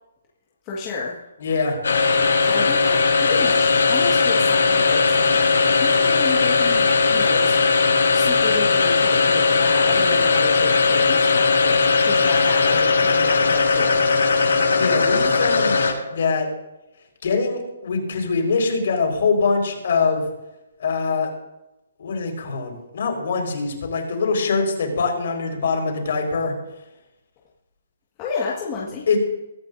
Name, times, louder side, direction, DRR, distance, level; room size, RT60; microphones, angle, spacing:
voice 1, 0.6-1.2 2.4-7.6 8.1-14.0 28.2-29.1, left 5 dB, 15° left, -5 dB, 1.8 m, -31 dB
voice 2, 1.4-1.8 14.7-15.8 16.1-16.5 17.2-20.2 20.8-21.3 22.0-26.5 29.1-29.2, left 4 dB, 45° left, 2 dB, 4.8 m, -23 dB
sound 1, 1.8-16.2, left 4 dB, 85° left, 6.2 m, -18 dB
23.0 x 13.5 x 2.7 m, 0.94 s
hypercardioid pair, 180°, 0 cm